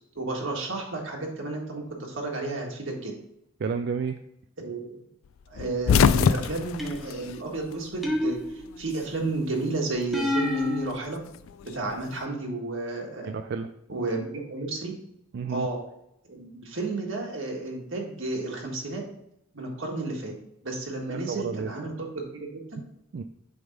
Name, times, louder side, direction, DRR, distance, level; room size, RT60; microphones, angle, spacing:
voice 1, 0.1-3.1 4.6-5.0 5.5-8.4 8.8-11.2 11.6-13.3 13.9-14.9 15.5-15.8 16.3-19.0 19.5-20.3 20.6-22.8, right 2 dB, 70° right, 0 dB, 1.6 m, -32 dB
voice 2, 3.6-4.1 13.3-13.7 15.3-15.7 21.1-21.7 23.1-23.2, right 5 dB, 55° right, 7 dB, 0.3 m, -31 dB
sound 1, 5.5-8.1 8.4-9.4 10.6-12.1, left 6 dB, 80° left, 0.3 m, -24 dB
sound 2, 6.8-7.3 8.0-8.9 10.1-10.9, left 2 dB, ahead, 0.7 m, -28 dB
7.9 x 3.5 x 5.2 m, 0.79 s
head